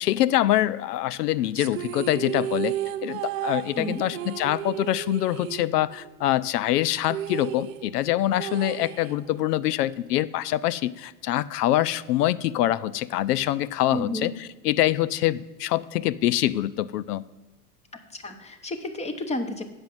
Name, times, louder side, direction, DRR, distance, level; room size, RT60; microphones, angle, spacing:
voice 1, 0.0-2.7 3.0-14.3 14.6-17.2, left 14 dB, 85° left, 18 dB, 0.6 m, -25 dB
sound 1, 1.6-6.2 6.5-6.6 6.9-9.5, right 11 dB, 60° right, 0.7 m, -33 dB
voice 2, 13.9-14.3 18.1-19.6, left 1 dB, 15° left, 7 dB, 0.9 m, -31 dB
8.1 x 5.1 x 7.3 m, 1.1 s
hypercardioid pair, 110°, 46 cm